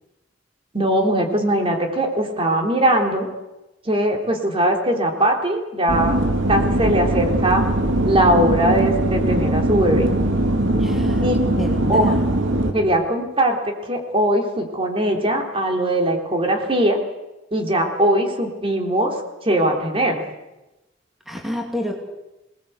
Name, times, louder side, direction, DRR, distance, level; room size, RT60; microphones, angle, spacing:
voice 1, 0.7-3.3 3.9-6.2 6.5-7.6 8.0-10.1 11.2-11.4 11.9-12.1 12.7-17.0 17.5-19.2 19.4-20.2, right 1 dB, 30° right, 3 dB, 3.7 m, -20 dB
sound 1, 5.9-12.7, right 1 dB, 70° right, 2.7 m, -20 dB
voice 2, 10.8-12.2 21.3-21.9, left 1 dB, ahead, 0 dB, 2.6 m, -29 dB
26.5 x 19.5 x 8.2 m, 1.0 s
head